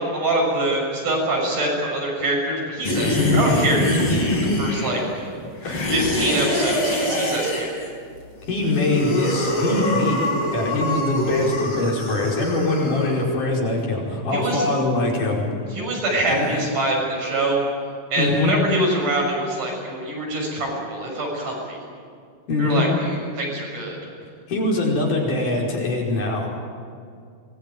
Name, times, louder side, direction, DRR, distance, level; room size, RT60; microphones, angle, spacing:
voice 1, 0.0-5.3 5.9-7.8 14.3-14.6 15.7-17.7 18.1-21.8 22.6-24.0, right 1 dB, 65° right, -1 dB, 8.4 m, -24 dB
sound 1, 2.8-5.1 5.6-7.9 8.5-13.2, left 1 dB, 35° left, 5.8 m, -24 dB
voice 2, 4.3-4.6 5.6-5.9 8.5-15.4 16.3-16.6 18.2-18.6 22.5-22.9 24.5-26.5, left 2 dB, 65° left, -2 dB, 6.6 m, -23 dB
24.5 x 21.0 x 9.3 m, 2.2 s
omnidirectional pair, 4.0 m